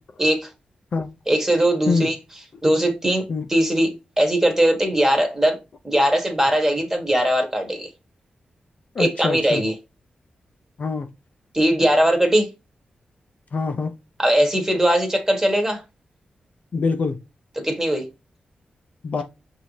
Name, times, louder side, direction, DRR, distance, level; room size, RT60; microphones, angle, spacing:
voice 1, 0.2-0.5 1.3-2.2 2.6-3.2 3.5-5.6 5.8-7.9 9.0-9.7 11.5-12.5 14.2-15.8 17.6-18.0, right 1 dB, 15° right, 1.3 m, -20 dB
voice 2, 9.0-9.6 10.8-11.1 13.5-13.9 16.7-17.2 19.0-19.2, left 4 dB, 55° left, 0.5 m, -24 dB
5.6 x 2.7 x 3.1 m
cardioid pair, 75°, 3 cm